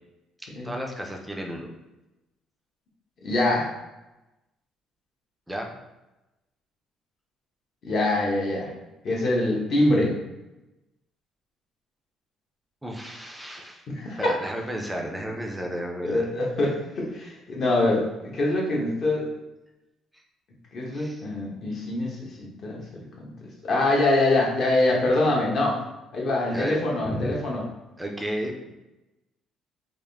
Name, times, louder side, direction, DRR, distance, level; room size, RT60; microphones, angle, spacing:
voice 1, 0.4-1.7 5.5-5.7 12.8-13.8 14.2-16.3 20.1-20.2 20.9-21.2 26.5-27.4 28.0-28.7, equal, 5° right, 1 dB, 0.4 m, -33 dB
voice 2, 3.2-3.7 7.8-8.7 9.0-10.2 13.9-14.4 16.0-19.3 20.7-22.3 22.6-23.3 23.6-25.8 26.1-27.6, left 2 dB, 45° left, -3 dB, 1.0 m, -24 dB
3.6 x 2.5 x 3.4 m, 0.99 s
cardioid pair, 155°, 0 cm